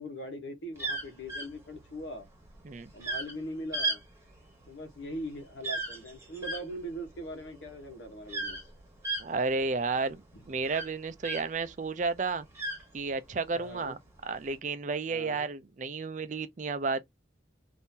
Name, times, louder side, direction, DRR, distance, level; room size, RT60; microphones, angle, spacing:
voice 1, 0.0-2.3 2.9-4.0 4.7-8.6 10.3-10.4 13.5-14.0 15.1-15.5, equal, 80° left, 1.0 m, -41 dB
sound 1, 0.8-11.7 12.1-13.4 14.1-14.5, right 2 dB, 15° right, 1.2 m, -36 dB
voice 2, 9.2-10.2 10.5-12.5 12.9-17.0, right 4 dB, 40° right, 0.4 m, -32 dB
3.7 x 2.6 x 2.7 m
head